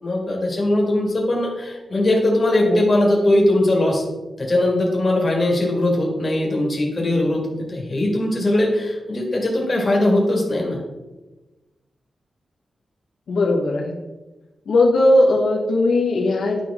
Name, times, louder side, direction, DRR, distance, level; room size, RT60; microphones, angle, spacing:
voice 1, 0.0-4.0 4.4-7.4 7.7-10.8, left 1 dB, 30° left, -1 dB, 1.8 m, -20 dB
voice 2, 13.3-14.0 14.7-16.6, left 2 dB, 80° left, -1 dB, 1.3 m, -18 dB
10.5 x 5.4 x 3.6 m, 1.1 s
wide cardioid pair, 155°, 0 cm